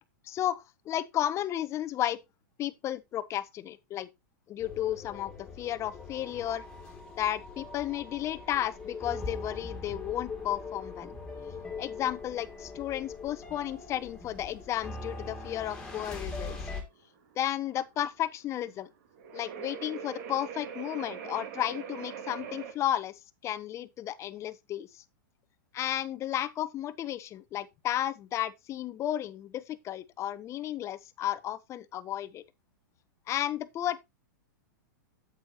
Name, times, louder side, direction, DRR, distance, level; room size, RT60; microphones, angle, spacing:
voice 1, 0.3-2.2 2.6-4.1 4.5-5.3 5.6-6.6 7.2-11.1 11.8-16.6 17.4-18.9 19.3-23.1 23.4-25.0 25.7-32.4 33.3-34.0, left 12 dB, 25° left, 0.7 m, -33 dB
sound 1, 4.6-16.8, left 3 dB, 10° left, 2.3 m, -41 dB
sound 2, 4.8-22.7, right 7 dB, 60° right, 1.9 m, -45 dB
8.6 x 8.3 x 2.9 m
hypercardioid pair, 130°, 11 cm